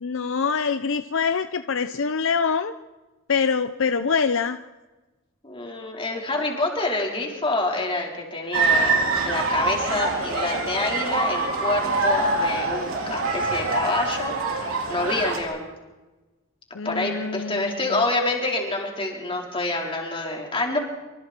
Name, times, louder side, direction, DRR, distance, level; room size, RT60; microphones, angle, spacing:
voice 1, 0.0-2.7 3.3-4.6 16.7-18.0, left 5 dB, 65° left, 10 dB, 0.7 m, -25 dB
voice 2, 5.4-15.7 16.8-20.8, left 2 dB, 25° left, 0 dB, 4.4 m, -27 dB
sound 1, 8.5-15.4, right 3 dB, 75° right, 4.3 m, -24 dB
25.5 x 25.5 x 4.5 m, 1.1 s
head